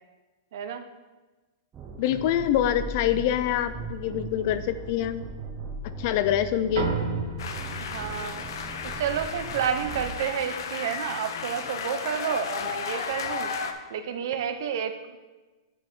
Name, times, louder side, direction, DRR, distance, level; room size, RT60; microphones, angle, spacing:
voice 1, 0.5-0.8 7.8-8.6 8.9-13.5 13.9-15.2, right 8 dB, 55° right, 8 dB, 0.8 m, -30 dB
sound 1, 1.7-10.0, right 3 dB, 15° right, 0.9 m, -39 dB
voice 2, 2.0-5.3 6.0-6.9, left 11 dB, 40° left, 12 dB, 0.4 m, -25 dB
sound 2, 6.8-11.5, right 4 dB, 90° right, 2.0 m, -35 dB
sound 3, 7.4-13.7, left 6 dB, 70° left, 0.9 m, -34 dB
8.4 x 6.2 x 4.6 m, 1.2 s
supercardioid pair, 165°, 2 cm